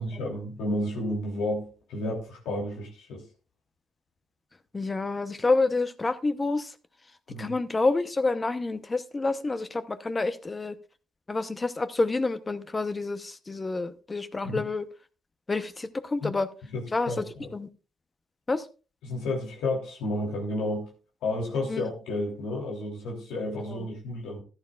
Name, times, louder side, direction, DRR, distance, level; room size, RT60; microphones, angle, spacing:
voice 1, 0.0-3.2 7.3-7.5 14.4-14.6 16.2-16.3 16.7-17.5 19.0-20.9 21.2-24.4, left 1 dB, 90° left, 3.1 m, -31 dB
voice 2, 4.7-6.7 7.4-10.8 11.3-14.9 15.5-16.5 16.9-17.7 18.5-18.7 21.7-21.8 23.5-23.9, left 3 dB, 25° left, 0.8 m, -28 dB
14.5 x 11.5 x 2.4 m
cardioid pair, 90°, 0 cm